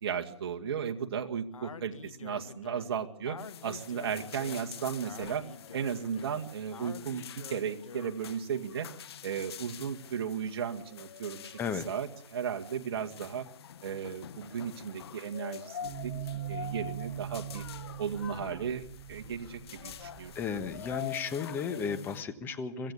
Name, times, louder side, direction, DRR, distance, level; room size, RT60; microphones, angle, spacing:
voice 1, 0.0-5.4 5.7-8.9 9.2-11.5 11.9-13.5 13.8-17.6 18.0-20.3, right 7 dB, 50° right, 4 dB, 2.1 m, -35 dB
Speech, 1.5-8.3, left 5 dB, 80° left, 1.6 m, -48 dB
sound 1, 3.4-22.2, left 9 dB, 50° left, 1.3 m, -46 dB
sound 2, 15.8-21.0, right 11 dB, 10° right, 3.5 m, -42 dB
voice 2, 20.3-22.9, left 6 dB, 10° left, 9 dB, 1.2 m, -34 dB
24.0 x 15.5 x 8.5 m, 0.67 s
hypercardioid pair, 150°, 17 cm